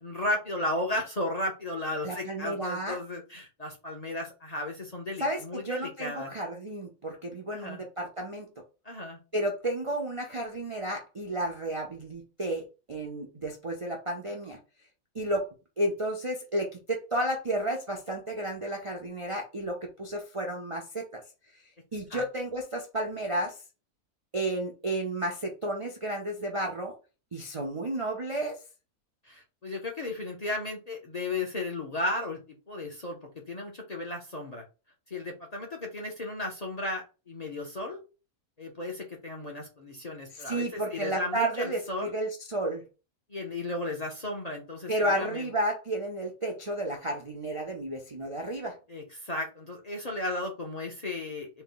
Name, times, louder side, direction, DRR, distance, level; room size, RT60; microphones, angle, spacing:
voice 1, 0.0-6.3 7.5-7.8 8.8-9.2 22.1-22.2 29.2-33.2 33.5-34.6 35.1-38.0 38.6-42.1 43.3-45.5 48.9-51.5, left 2 dB, 35° left, 0 dB, 0.7 m, -34 dB
voice 2, 2.0-3.0 5.2-8.5 9.3-14.6 15.1-15.5 15.8-21.2 21.9-23.6 24.3-27.0 27.3-28.6 40.3-42.8 44.9-48.8, right 1 dB, 40° right, 1 dB, 0.4 m, -32 dB
4.3 x 2.2 x 3.8 m, 0.31 s
omnidirectional pair, 1.6 m